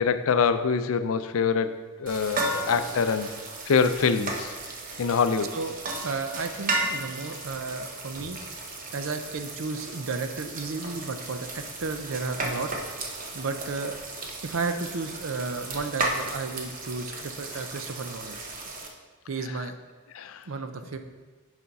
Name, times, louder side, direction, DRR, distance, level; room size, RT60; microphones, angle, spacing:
voice 1, 0.0-3.3 3.7-4.5 5.0-5.5 20.2-20.4, left 5 dB, 75° left, 11 dB, 0.4 m, -24 dB
sound 1, 2.1-18.9, right 2 dB, 40° right, 0.9 m, -35 dB
voice 2, 5.5-8.4 8.9-13.0 13.3-13.9 14.4-18.4 19.3-19.7 20.5-21.0, right 4 dB, 70° right, 8 dB, 0.6 m, -33 dB
6.9 x 4.4 x 5.3 m, 1.3 s
head